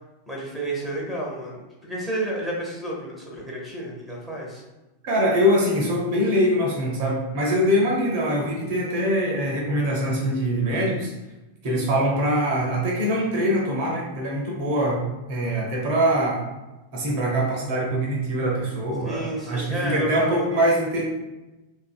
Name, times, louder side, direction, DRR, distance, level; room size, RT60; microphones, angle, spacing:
voice 1, 0.3-4.6 19.0-20.6, right 1 dB, ahead, -4 dB, 0.8 m, -31 dB
voice 2, 5.0-11.1 11.6-15.0 15.3-16.4 16.9-21.1, equal, 50° right, -2 dB, 0.7 m, -23 dB
2.7 x 2.6 x 2.3 m, 1.0 s
figure-of-eight pair, 90°, 0 cm